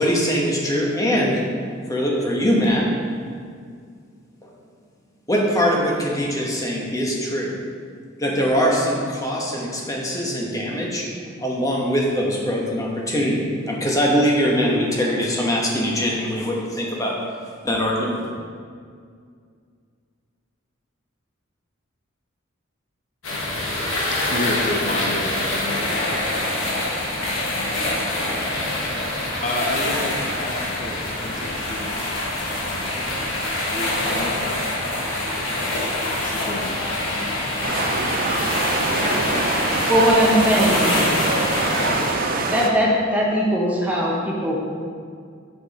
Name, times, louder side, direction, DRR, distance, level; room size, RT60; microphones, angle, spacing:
voice 1, 0.0-1.4 1.9-2.8 4.4-4.5 5.3-7.5 8.2-11.1 11.4-17.2 17.6-18.3, equal, 15° left, -2 dB, 1.1 m, -22 dB
sound 1, 23.2-42.1, left 1 dB, 90° left, 1.5 m, -25 dB
voice 2, 24.3-26.0 29.4-32.0 32.6-32.9 33.7-34.7 35.3-35.8 36.2-36.8, left 1 dB, 40° left, -1 dB, 0.7 m, -30 dB
sound 2, 37.6-42.7, right 3 dB, 45° right, 0.6 m, -25 dB
voice 3, 39.9-41.1 42.5-44.6, equal, 10° right, -4 dB, 1.1 m, -19 dB
6.8 x 5.9 x 4.1 m, 2.1 s
head